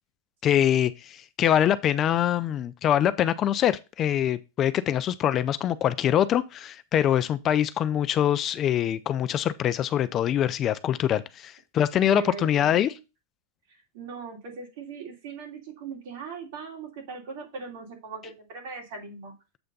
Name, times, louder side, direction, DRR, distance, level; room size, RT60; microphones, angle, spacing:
voice 1, 0.4-12.9, left 10 dB, 30° left, 0.4 m, -24 dB
voice 2, 12.1-13.0 13.7-19.3, right 5 dB, 60° right, 2.9 m, -39 dB
7.9 x 3.4 x 5.2 m
supercardioid pair, 140°, 0 cm